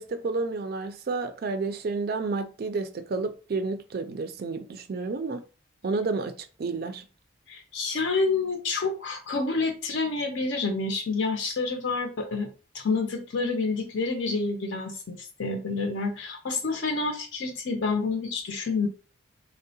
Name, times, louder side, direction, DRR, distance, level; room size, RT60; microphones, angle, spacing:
voice 1, 0.0-5.4 5.8-7.1, right 3 dB, 45° right, 0.3 m, -30 dB
voice 2, 7.5-12.5 12.7-18.9, left 3 dB, 60° left, 0.5 m, -28 dB
3.6 x 2.0 x 2.7 m
head